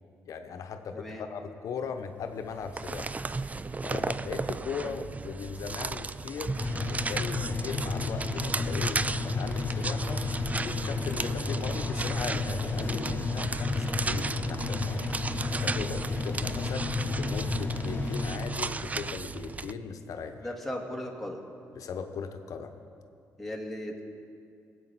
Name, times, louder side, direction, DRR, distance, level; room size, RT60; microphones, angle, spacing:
voice 1, 0.3-3.1 3.8-6.5 6.9-10.2 10.6-15.1 15.5-20.5 21.8-22.8, left 6 dB, 65° left, 7 dB, 0.9 m, -38 dB
voice 2, 0.9-1.3 4.8-5.0 11.2-11.4 15.8-16.0 20.4-21.4 23.4-24.0, left 1 dB, 5° left, -1 dB, 2.1 m, -38 dB
sound 1, 2.4-19.7, right 3 dB, 25° right, 0.4 m, -35 dB
sound 2, 6.6-18.3, left 3 dB, 35° left, 2.0 m, -32 dB
19.0 x 8.5 x 4.2 m, 2.5 s
supercardioid pair, 60°, 6 cm